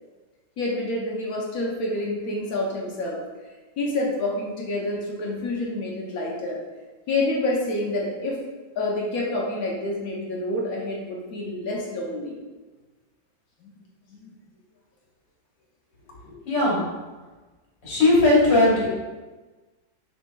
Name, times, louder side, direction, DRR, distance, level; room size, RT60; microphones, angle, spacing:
voice 1, 0.6-3.2 3.8-6.6 7.1-8.4 8.8-12.4 13.6-13.7 14.1-14.3, left 2 dB, 60° left, -2 dB, 1.0 m, -28 dB
voice 2, 16.2-16.9 17.8-18.9, left 2 dB, 80° left, -6 dB, 1.9 m, -19 dB
5.3 x 3.6 x 2.3 m, 1.2 s
omnidirectional pair, 2.0 m